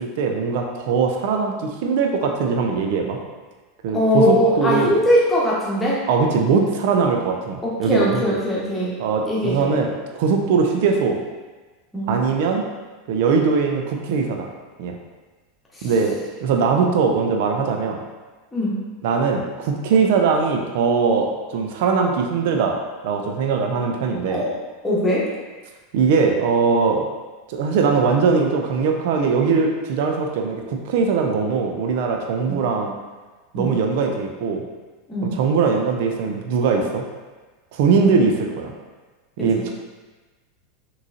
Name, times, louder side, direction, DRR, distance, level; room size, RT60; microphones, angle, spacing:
voice 1, 0.0-3.2 3.8-5.0 6.1-8.3 9.0-11.2 12.1-12.6 13.1-14.5 14.8-14.9 15.8-18.0 19.0-22.8 23.0-24.4 25.9-27.1 27.5-32.9 33.5-34.6 35.3-37.0 37.7-38.7 39.4-39.7, right 5 dB, 55° right, 2 dB, 0.5 m, -21 dB
voice 2, 3.9-6.0 7.6-9.0 9.3-9.7 11.9-12.1 15.8-15.9 18.5-18.8 24.3-24.5 24.8-25.3 32.5-32.6 33.5-33.8 35.1-35.4 39.5-39.7, equal, 10° left, -7 dB, 1.2 m, -21 dB
6.0 x 3.1 x 2.7 m, 1.3 s
figure-of-eight pair, 85°, 0 cm